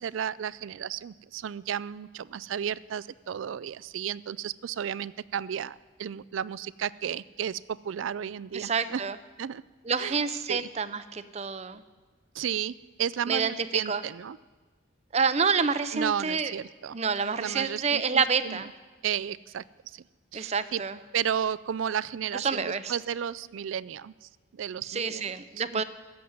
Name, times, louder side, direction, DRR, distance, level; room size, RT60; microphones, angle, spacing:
voice 1, 0.0-9.0 9.4-9.6 10.0-10.2 10.5-10.7 12.3-14.4 15.9-17.0 17.4-18.6 19.0-20.0 20.3-20.8 21.1-25.3 25.7-25.8, right 8 dB, 85° right, 19 dB, 0.4 m, -33 dB
voice 2, 8.5-9.1 9.9-11.8 13.3-13.5 13.9-14.0 15.1-16.5 16.9-18.7 20.3-21.0 22.3-22.9 24.9-25.8, right 5 dB, 35° right, 12 dB, 0.6 m, -28 dB
15.0 x 7.7 x 9.5 m, 1.3 s
head